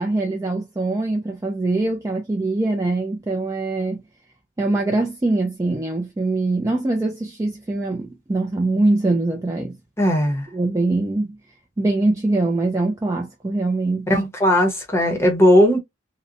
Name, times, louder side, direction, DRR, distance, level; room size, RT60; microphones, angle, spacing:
voice 1, 0.0-4.0 4.6-9.8 10.5-11.4 11.8-14.1, right 2 dB, 15° right, 0.3 m, -23 dB
voice 2, 10.0-10.5 14.1-15.8, equal, 15° left, 0.7 m, -17 dB
2.8 x 2.0 x 2.4 m
head